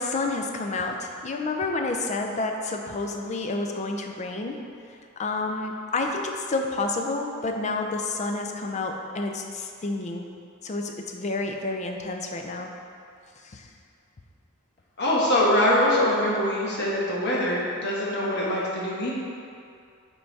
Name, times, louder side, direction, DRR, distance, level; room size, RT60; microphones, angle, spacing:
voice 1, 0.0-4.6 5.2-10.3 10.6-12.7 13.4-13.7, left 3 dB, 35° left, 3 dB, 0.5 m, -29 dB
voice 2, 15.0-19.1, left 1 dB, 55° left, -5 dB, 1.1 m, -23 dB
5.4 x 4.6 x 4.0 m, 2.4 s
head